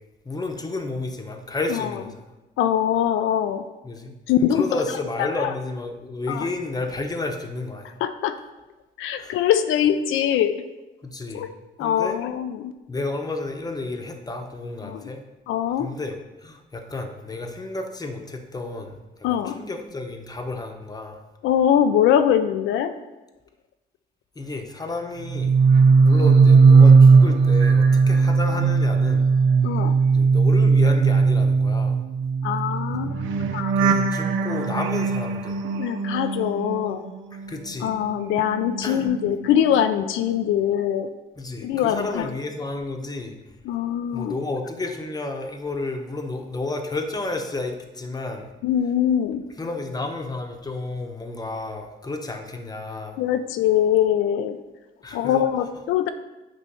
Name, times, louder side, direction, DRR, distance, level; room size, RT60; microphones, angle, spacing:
voice 1, 0.2-2.1 3.8-8.0 9.2-9.3 11.0-11.5 11.8-12.2 12.9-15.2 15.8-21.2 24.3-25.5 26.0-29.2 30.1-32.0 33.8-35.6 37.3-37.9 38.8-39.1 41.4-43.3 44.1-48.5 49.6-53.2 55.0-55.5, left 2 dB, 20° left, 4 dB, 0.9 m, -31 dB
voice 2, 2.6-3.6 4.3-4.8 5.2-5.5 6.3-6.5 8.0-8.3 9.0-10.6 11.3-11.5 11.8-12.7 14.8-15.1 15.5-15.9 19.2-19.7 21.4-22.9 29.6-30.0 32.4-33.7 35.8-37.0 37.8-41.1 41.6-42.3 43.7-44.3 48.6-49.4 53.2-54.6 55.1-56.1, left 10 dB, 85° left, 8 dB, 0.4 m, -22 dB
sound 1, 25.3-37.5 37.8-39.9 40.2-40.6, right 4 dB, 80° right, 0.6 m, -18 dB
8.4 x 3.1 x 5.5 m, 1.1 s
cardioid pair, 90°, 20 cm